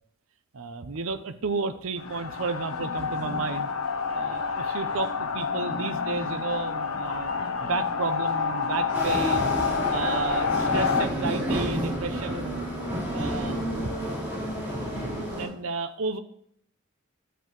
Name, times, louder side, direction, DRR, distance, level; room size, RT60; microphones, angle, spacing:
voice 1, 0.5-3.7 4.1-7.3 7.6-9.6 9.9-12.6 13.1-13.8 14.8-16.2, right 4 dB, 75° right, 9 dB, 0.7 m, -32 dB
sound 1, 2.0-11.1, left 5 dB, 80° left, 0.9 m, -28 dB
sound 2, 8.9-15.5, equal, 10° right, 4.0 m, -30 dB
12.0 x 7.9 x 3.1 m, 0.68 s
head